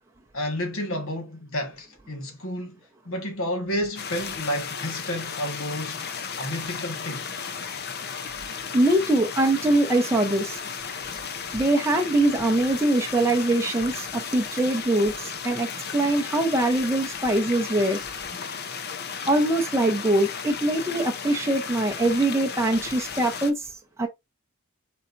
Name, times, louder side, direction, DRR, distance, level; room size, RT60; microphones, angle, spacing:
voice 1, 0.3-2.8 3.0-6.1 6.4-7.3, equal, 75° left, 1.5 m, -31 dB
sound 1, 4.0-23.5, left 6 dB, 50° left, 0.7 m, -35 dB
voice 2, 8.7-10.6 11.5-18.0 19.3-23.6 24.0-24.1, right 1 dB, 15° right, 0.7 m, -23 dB
4.3 x 4.2 x 2.5 m
head